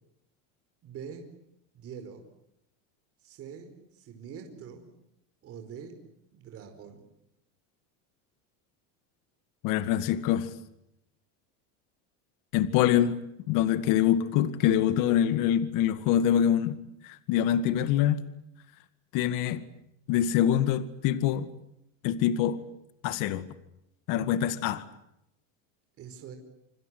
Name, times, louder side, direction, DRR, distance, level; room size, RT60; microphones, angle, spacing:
voice 1, 0.8-1.3 1.7-2.2 3.2-4.9 5.4-6.0 6.3-7.1 24.6-24.7 26.0-26.4, right 7 dB, 35° right, 5.0 m, -44 dB
voice 2, 9.6-10.5 12.5-13.2 13.5-18.2 19.1-19.6 20.1-21.5 22.0-22.6 23.0-23.5 24.1-24.8, left 10 dB, 55° left, 2.2 m, -25 dB
26.5 x 26.0 x 8.0 m
supercardioid pair, 150°, 38 cm